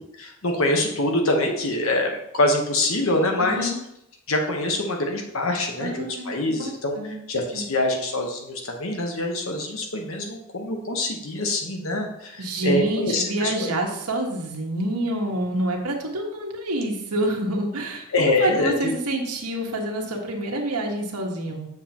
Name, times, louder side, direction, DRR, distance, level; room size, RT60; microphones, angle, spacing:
voice 1, 0.2-3.7 4.3-13.7 18.1-18.9, left 2 dB, 65° left, 2 dB, 1.1 m, -25 dB
voice 2, 3.4-3.8 5.8-7.1 7.5-7.6 12.4-21.7, right 1 dB, 90° right, 0 dB, 1.5 m, -27 dB
7.3 x 6.6 x 3.0 m, 0.80 s
head